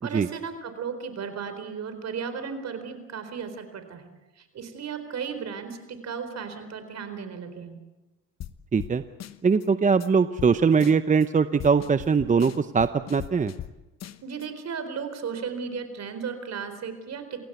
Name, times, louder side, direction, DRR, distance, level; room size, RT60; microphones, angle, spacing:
voice 1, 0.0-4.1 4.4-7.8 14.2-17.4, right 6 dB, 55° right, 9 dB, 4.3 m, -35 dB
sound 1, 8.4-8.5 8.8-8.9 9.2-9.7 10.0-10.1 10.4-10.5 10.8-11.3 11.6-13.7 14.0-14.5, left 11 dB, 55° left, 1.2 m, -39 dB
voice 2, 8.7-9.0 9.4-13.5, right 5 dB, 25° right, 12 dB, 0.7 m, -21 dB
28.5 x 16.5 x 8.1 m, 1.1 s
cardioid pair, 90°, 32 cm